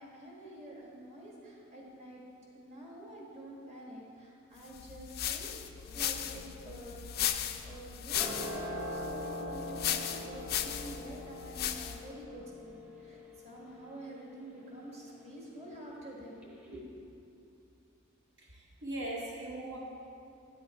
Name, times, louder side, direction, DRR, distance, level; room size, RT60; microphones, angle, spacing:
voice 1, 0.0-2.2 2.5-7.1 7.6-16.9, right 1 dB, 30° right, -3 dB, 1.5 m, -48 dB
sound 1, 4.7-12.1, left 11 dB, 50° left, 0.4 m, -37 dB
sound 2, 5.8-16.1 16.4-16.5, left 1 dB, 5° right, 0.8 m, -44 dB
voice 2, 18.4-19.8, right 1 dB, 60° right, -3 dB, 0.8 m, -40 dB
9.1 x 6.9 x 4.3 m, 2.6 s
head